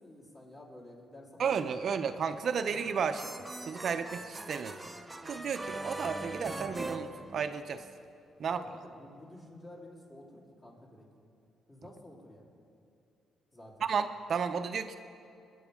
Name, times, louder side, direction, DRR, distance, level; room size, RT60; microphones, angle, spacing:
voice 1, 0.0-1.9 2.4-3.0 8.5-11.1 11.7-12.5 13.5-13.9, left 1 dB, 35° left, -3 dB, 3.5 m, -51 dB
voice 2, 1.4-3.3 3.6-4.8 5.3-7.8 8.4-8.6 13.8-15.0, right 6 dB, 55° right, 8 dB, 0.5 m, -33 dB
sound 1, 2.6-7.9, right 2 dB, 10° right, 0.7 m, -42 dB
22.5 x 9.2 x 3.6 m, 2.7 s
cardioid pair, 90°, 0 cm